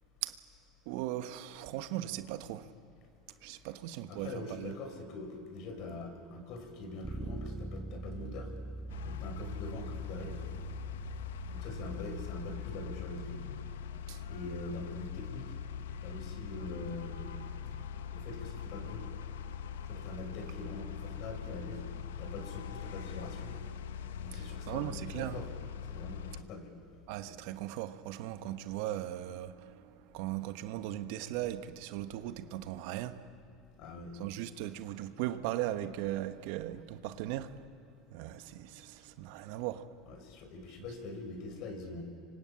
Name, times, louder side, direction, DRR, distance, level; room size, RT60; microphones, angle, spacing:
voice 1, 0.8-2.7 3.4-4.7 14.1-14.2 24.3-25.4 27.1-33.3 34.1-37.7 38.1-39.9, right 13 dB, 70° right, 1.3 m, -38 dB
voice 2, 4.1-8.5 9.0-10.4 11.4-13.4 14.2-15.5 16.0-17.3 18.1-19.0 19.8-21.8 22.2-23.5 24.2-25.5 25.9-26.7 27.3-27.4 33.8-34.1 40.1-42.0, left 3 dB, 60° left, 5.9 m, -43 dB
Bass guitar, 7.0-13.3, right 2 dB, 5° right, 1.9 m, -43 dB
sound 1, 8.9-26.4, left 7 dB, 80° left, 1.1 m, -42 dB
25.5 x 25.0 x 8.7 m
hypercardioid pair, 80°, 0 cm